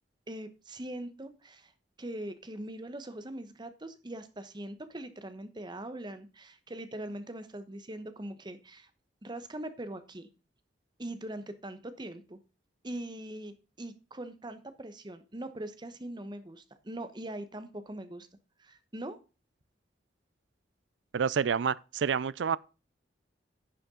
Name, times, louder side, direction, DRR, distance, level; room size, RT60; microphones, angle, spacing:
voice 1, 0.3-1.7 2.0-8.9 9.2-10.3 11.0-12.4 12.8-18.3 18.6-19.2, right 1 dB, 25° right, 1.0 m, -41 dB
voice 2, 21.1-22.6, right 6 dB, 85° right, 0.4 m, -28 dB
10.5 x 6.9 x 3.8 m
head